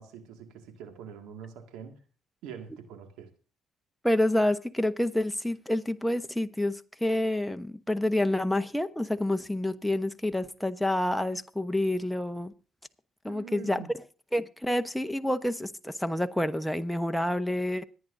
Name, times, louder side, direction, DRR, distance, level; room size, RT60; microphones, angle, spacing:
voice 1, 0.0-2.0 2.4-3.3 13.3-13.9, right 8 dB, 80° right, 2.0 m, -44 dB
voice 2, 4.0-12.5 13.2-13.8 14.3-17.8, left 1 dB, 5° left, 1.0 m, -28 dB
25.5 x 9.3 x 2.6 m
supercardioid pair, 60°, 0 cm